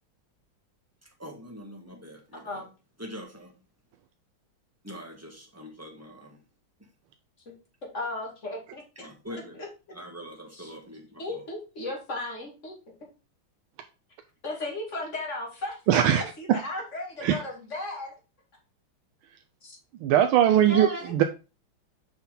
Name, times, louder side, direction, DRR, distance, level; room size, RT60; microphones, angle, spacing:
voice 1, 1.2-2.6 3.0-3.5 4.8-6.4 9.0-9.6 9.9-11.4, equal, 10° right, 1.4 m, -43 dB
voice 2, 7.9-9.7 10.5-10.7 11.2-13.1 14.4-18.1 19.6-19.8 20.5-21.2, left 2 dB, 35° left, 2.8 m, -36 dB
voice 3, 15.9-16.2 16.5-16.6 17.2-17.4 20.0-21.2, right 10 dB, 85° right, 1.5 m, -20 dB
7.1 x 5.5 x 3.9 m
omnidirectional pair, 2.3 m